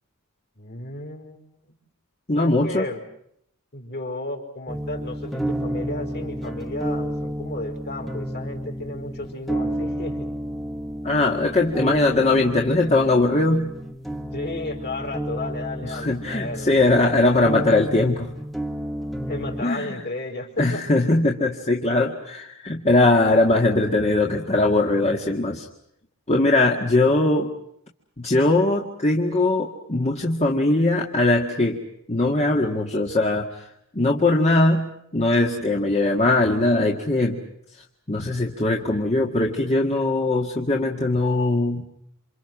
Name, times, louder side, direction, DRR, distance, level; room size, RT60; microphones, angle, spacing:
voice 1, 0.5-1.8 2.4-3.0 3.7-10.3 14.3-16.7 19.3-20.8 26.8-27.2, left 2 dB, 50° left, 3 dB, 5.0 m, -33 dB
voice 2, 2.3-2.8 11.0-13.7 15.9-18.3 19.6-20.0 20.6-25.7 26.3-27.5 28.2-31.8 32.1-33.7 33.9-34.9 35.1-37.4 38.1-41.8, left 2 dB, 30° left, 0 dB, 2.0 m, -20 dB
sound 1, 4.7-19.6, right 1 dB, ahead, 1.6 m, -31 dB
28.5 x 27.0 x 6.1 m, 0.73 s
head